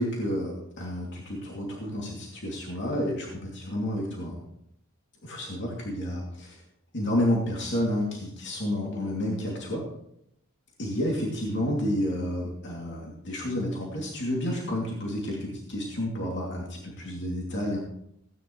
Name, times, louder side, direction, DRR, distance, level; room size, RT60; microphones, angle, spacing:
voice 1, 0.0-4.4 5.2-6.6 6.9-9.8 10.8-17.8, left 1 dB, 55° left, -3 dB, 2.7 m, -30 dB
17.0 x 9.7 x 3.2 m, 0.74 s
head